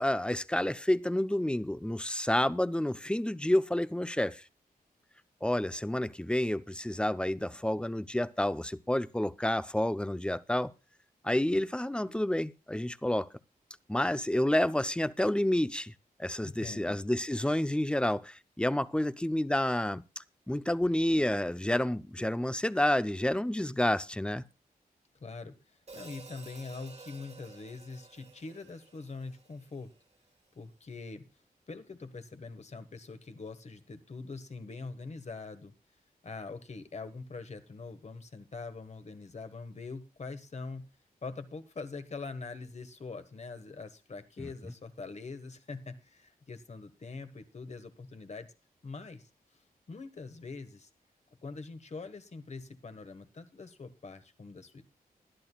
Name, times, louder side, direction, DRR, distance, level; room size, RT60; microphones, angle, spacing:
voice 1, 0.0-4.4 5.4-10.7 11.2-13.3 13.9-15.9 16.2-24.4 44.4-44.5, left 1 dB, 5° left, 0.6 m, -29 dB
voice 2, 16.4-17.0 25.2-29.9 30.5-31.2 31.7-35.7 36.2-40.8 41.2-48.5 48.8-49.3 49.9-50.9 51.4-54.8, left 4 dB, 45° left, 1.5 m, -43 dB
Hi-hat, 25.9-30.2, right 3 dB, 45° right, 1.6 m, -52 dB
21.0 x 11.0 x 2.3 m
cardioid pair, 75°, 16 cm